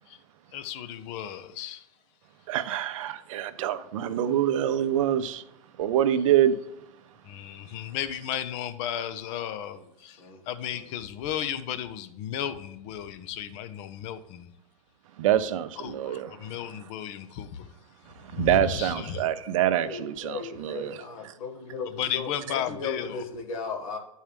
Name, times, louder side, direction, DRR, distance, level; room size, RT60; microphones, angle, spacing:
voice 1, 0.5-1.9 7.2-14.5 15.8-17.7 18.4-19.3 21.9-23.2, left 10 dB, 50° left, 10 dB, 0.8 m, -34 dB
voice 2, 2.5-5.4 5.8-6.5 15.2-16.3 18.3-21.0, right 11 dB, 65° right, 11 dB, 0.7 m, -25 dB
voice 3, 19.8-24.0, left 4 dB, 75° left, 3 dB, 1.8 m, -36 dB
11.0 x 4.5 x 3.5 m, 0.85 s
hypercardioid pair, 100°, 18 cm